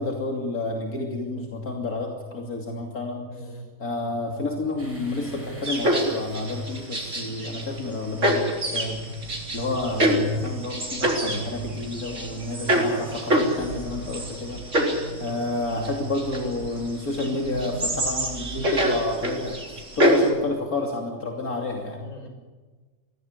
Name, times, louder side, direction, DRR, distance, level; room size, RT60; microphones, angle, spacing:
voice 1, 0.0-3.5 3.8-9.0 9.5-14.6 15.2-22.0, left 2 dB, 80° left, 1 dB, 3.3 m, -30 dB
voice 2, 3.3-3.7 12.6-12.8 14.7-15.4 22.0-22.3, equal, 60° left, 6 dB, 4.8 m, -41 dB
sound 1, 3.9-18.7, right 1 dB, 40° right, 4.7 m, -43 dB
sound 2, 4.8-20.4, right 1 dB, 10° right, 5.9 m, -45 dB
sound 3, 5.6-7.9 8.2-20.3, right 1 dB, 60° right, 4.3 m, -26 dB
23.0 x 17.0 x 9.8 m, 1.3 s
omnidirectional pair, 1.5 m